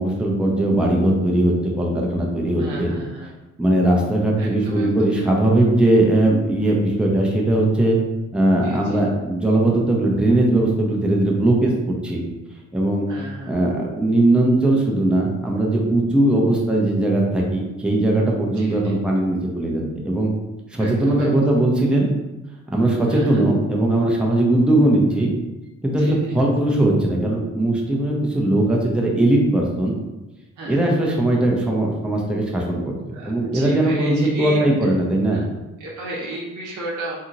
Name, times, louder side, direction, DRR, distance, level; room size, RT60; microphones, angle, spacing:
voice 1, 0.0-2.9 3.6-8.0 8.3-12.2 12.7-13.1 13.4-20.3 20.7-22.1 22.7-25.3 25.8-30.0 30.7-32.9 33.3-35.4, right 1 dB, 5° right, -2 dB, 0.6 m, -19 dB
voice 2, 2.6-3.3 4.4-4.9 8.6-9.0 13.1-13.5 18.6-18.7 20.8-21.3 23.1-23.4 26.0-26.3 30.6-30.9 33.1-34.7 35.2-35.4 35.8-37.2, right 1 dB, 85° right, -3 dB, 0.9 m, -33 dB
2.8 x 2.7 x 2.5 m, 1.0 s
cardioid pair, 90°, 30 cm